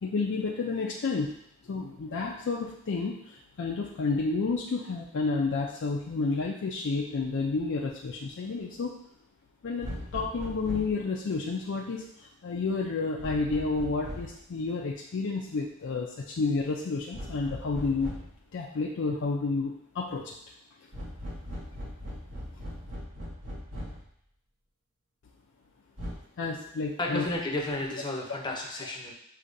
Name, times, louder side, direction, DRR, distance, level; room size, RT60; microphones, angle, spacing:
voice 1, 0.0-1.3 1.6-8.9 9.6-18.2 18.5-20.3 26.4-27.2, left 4 dB, 60° left, -1 dB, 0.4 m, -30 dB
sound 1, 9.8-11.0 13.2-14.4 17.1-18.4 20.9-24.1 26.0-26.1, equal, 70° right, 1.8 m, -39 dB
voice 2, 27.0-29.1, left 2 dB, 20° left, 0 dB, 0.7 m, -32 dB
6.5 x 2.8 x 2.6 m, 0.72 s
head